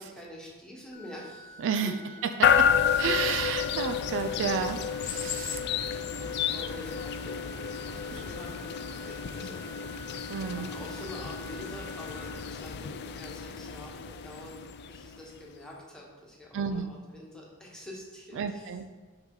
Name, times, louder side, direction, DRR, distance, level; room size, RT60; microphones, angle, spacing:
voice 1, 0.0-1.9 6.5-9.7 10.4-18.8, left 1 dB, 5° left, -4 dB, 1.3 m, -46 dB
sound 1, 0.9-12.3, equal, 25° left, 0.8 m, -49 dB
sound 2, 2.4-15.4, left 8 dB, 50° left, 0.3 m, -30 dB
voice 2, 3.0-5.6 8.1-8.2 10.3-10.7 16.5-16.9 18.4-18.9, right 6 dB, 60° right, 8 dB, 0.4 m, -31 dB
5.7 x 5.6 x 3.8 m, 1.4 s
head